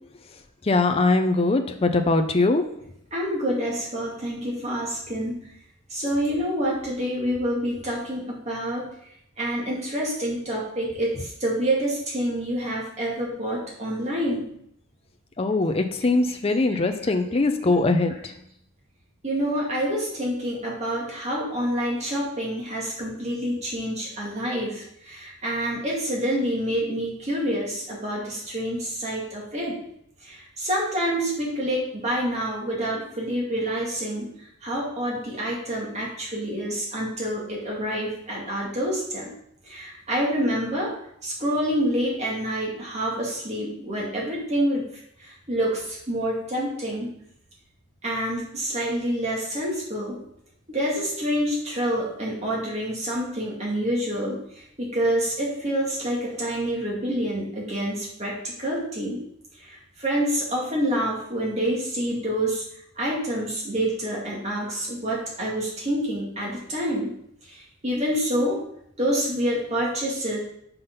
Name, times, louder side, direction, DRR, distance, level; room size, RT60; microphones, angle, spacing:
voice 1, 0.7-2.7 15.4-18.2, left 3 dB, 25° left, 6 dB, 0.5 m, -21 dB
voice 2, 3.1-5.5 5.9-8.9 9.4-14.5 16.7-17.1 19.2-29.8 30.2-34.3 34.6-39.3 39.7-40.9 41.2-44.9 45.2-47.1 48.0-50.2 50.7-59.2 59.7-62.6 63.0-67.1 67.5-68.6 69.0-70.4, equal, 30° right, -4 dB, 2.3 m, -27 dB
5.7 x 5.3 x 5.5 m, 0.71 s
head